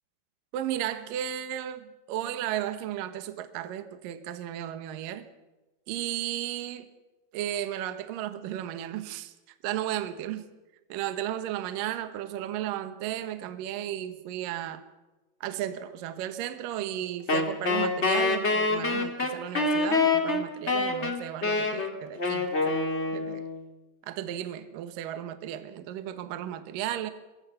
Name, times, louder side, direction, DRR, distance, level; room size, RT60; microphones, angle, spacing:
voice 1, 0.5-5.3 5.9-6.9 7.3-9.3 9.6-10.5 10.9-14.8 15.4-22.8 23.1-23.5 24.0-27.1, right 11 dB, 70° right, 2.2 m, -34 dB
Wind instrument woodwind instrument, 17.3-23.6, left 3 dB, 55° left, 0.7 m, -26 dB
26.5 x 21.5 x 5.8 m
omnidirectional pair, 5.7 m